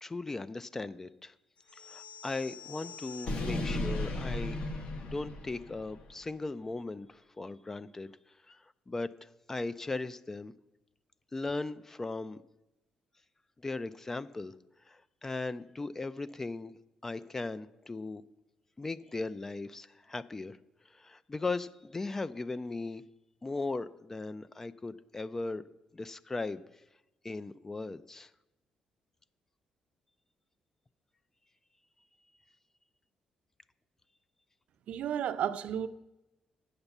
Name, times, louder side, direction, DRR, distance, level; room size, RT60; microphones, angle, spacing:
voice 1, 0.0-1.3 1.9-4.6 5.0-8.1 8.5-10.5 11.3-12.4 13.6-14.5 14.9-16.7 17.0-18.2 18.8-20.6 20.9-23.0 23.4-25.6 25.9-26.6 27.2-28.3, left 3 dB, 20° left, 0.3 m, -38 dB
sound 1, 1.7-6.0, left 1 dB, 60° left, 1.3 m, -37 dB
voice 2, 34.9-35.9, right 9 dB, 70° right, 0.5 m, -32 dB
9.0 x 6.6 x 7.1 m
cardioid pair, 140°, 2 cm